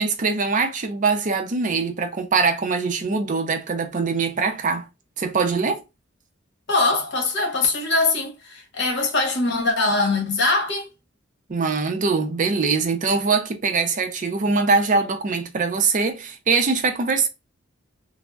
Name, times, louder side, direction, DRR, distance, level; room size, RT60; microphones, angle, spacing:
voice 1, 0.0-4.9 5.2-5.8 11.5-17.3, right 4 dB, 40° right, 0.5 m, -22 dB
voice 2, 6.7-10.9, left 3 dB, 60° left, 1.0 m, -22 dB
3.4 x 2.0 x 2.3 m
head